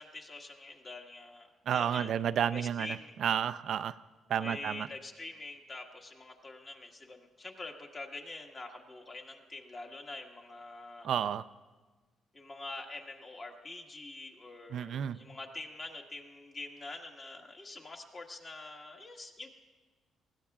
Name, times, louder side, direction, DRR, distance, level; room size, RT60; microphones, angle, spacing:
voice 1, 0.0-2.1 2.5-3.1 4.4-11.1 12.3-19.5, left 2 dB, 40° left, 2 dB, 1.6 m, -45 dB
voice 2, 1.7-3.9 4.3-4.9 11.0-11.5 14.7-15.2, right 9 dB, 65° right, 13 dB, 0.3 m, -31 dB
20.5 x 16.0 x 2.4 m, 1.3 s
cardioid pair, 90°, 0 cm